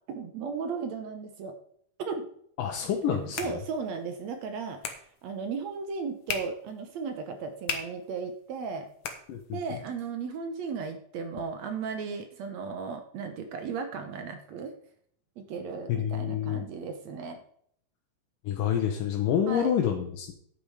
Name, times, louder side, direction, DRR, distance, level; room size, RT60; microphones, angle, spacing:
voice 1, 0.1-1.5 2.0-2.3 3.1-8.9 9.5-14.7 15.4-17.4 19.5-19.8, right 5 dB, 70° right, 7 dB, 1.9 m, -36 dB
voice 2, 2.6-3.6 9.3-9.8 15.9-16.6 18.4-20.3, left 9 dB, 85° left, 2 dB, 2.7 m, -28 dB
sound 1, 2.8-9.9, left 6 dB, 55° left, 1.8 m, -41 dB
10.5 x 8.6 x 4.9 m, 0.65 s
omnidirectional pair, 3.7 m